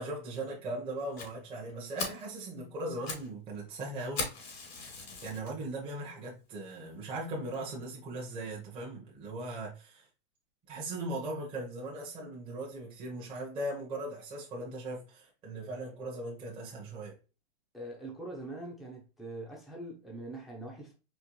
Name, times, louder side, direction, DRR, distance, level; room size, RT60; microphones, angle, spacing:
voice 1, 0.0-4.3 5.2-10.1 10.7-17.2, right 1 dB, 15° right, 1.0 m, -39 dB
Fire, 1.2-1.3 1.7-1.8 2.0-2.3 2.8-3.3 3.6-3.7 4.2-5.5 6.1-6.2 6.7-6.8 7.1-7.2 7.5-7.6, left 4 dB, 90° left, 2.6 m, -38 dB
voice 2, 17.7-20.9, right 2 dB, ahead, 0.7 m, -43 dB
4.5 x 3.1 x 3.0 m
hypercardioid pair, 155°, 31 cm